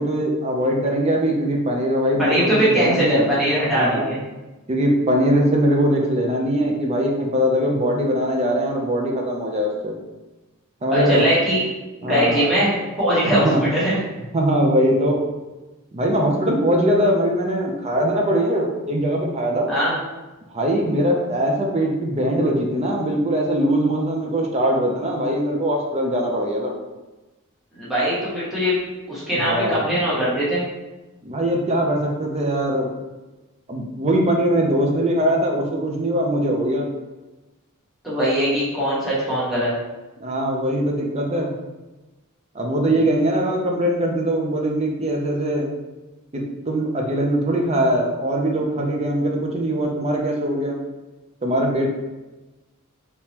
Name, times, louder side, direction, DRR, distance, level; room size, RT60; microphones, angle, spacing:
voice 1, 0.0-3.3 3.7-4.1 4.7-10.0 10.8-11.3 12.0-12.5 13.2-13.6 14.3-15.2 15.9-19.7 20.5-26.7 29.4-29.9 31.2-32.9 33.7-36.9 40.2-41.5 42.5-45.7 46.3-50.8 51.4-51.9, right 1 dB, 30° right, 0 dB, 0.6 m, -21 dB
voice 2, 2.2-4.2 10.9-11.6 12.0-14.0 19.7-19.9 27.7-28.8 29.1-30.6 38.0-39.7, equal, ahead, -11 dB, 1.2 m, -21 dB
3.6 x 2.9 x 2.9 m, 1.1 s
head